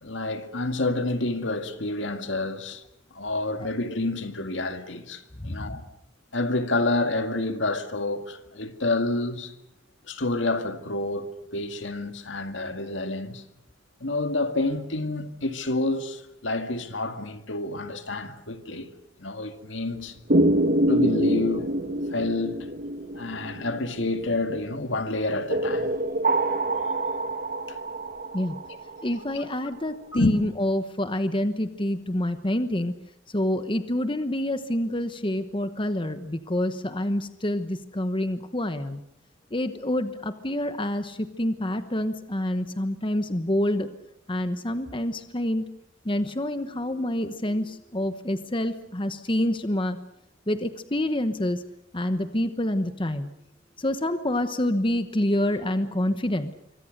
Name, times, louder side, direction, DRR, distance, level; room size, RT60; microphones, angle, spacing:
voice 1, 0.0-2.8 3.1-5.9 6.3-9.5 10.1-13.4 14.0-18.9 19.2-20.2 20.9-21.7 22.1-22.7 23.1-25.9 27.7-27.8 30.1-30.4, left 2 dB, 70° left, 2.1 m, -28 dB
voice 2, 5.4-5.8 28.3-28.6 29.0-32.9 33.3-39.0 39.5-43.9 44.3-45.7 46.0-50.0 50.5-51.6 51.9-53.3 53.8-56.5, left 1 dB, 25° left, 1.1 m, -27 dB
sound 1, 20.3-24.5 25.5-29.3, right 1 dB, 50° right, 1.6 m, -26 dB
26.0 x 24.5 x 6.7 m
head